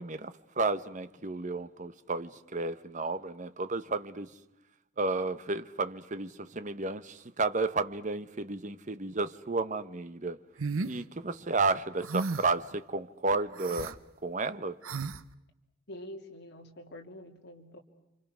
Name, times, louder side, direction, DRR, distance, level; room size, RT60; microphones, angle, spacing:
voice 1, 0.0-4.3 5.0-10.4 10.8-14.0 14.2-14.8, right 3 dB, 35° right, 0.9 m, -32 dB
sound 1, 10.6-11.0 12.0-12.6 13.5-13.9 14.8-15.2, right 3 dB, 80° right, 0.9 m, -34 dB
voice 2, 15.9-17.8, left 1 dB, 55° left, 2.8 m, -46 dB
29.5 x 26.0 x 6.2 m
head